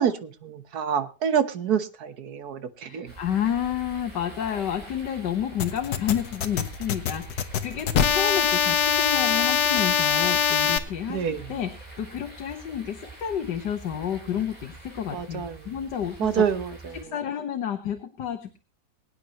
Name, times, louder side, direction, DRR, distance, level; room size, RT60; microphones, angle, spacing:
voice 1, 0.0-3.1 11.1-11.5 15.1-15.7 16.2-17.1, right 8 dB, 65° right, 11 dB, 1.7 m, -27 dB
voice 2, 2.9-16.4 17.0-18.6, left 9 dB, 90° left, 6 dB, 1.8 m, -30 dB
sound 1, 3.1-17.0, right 2 dB, 25° right, 5.3 m, -45 dB
sound 2, 5.6-10.8, left 8 dB, 70° left, 1.6 m, -23 dB
23.0 x 9.6 x 3.0 m, 0.32 s
omnidirectional pair, 1.8 m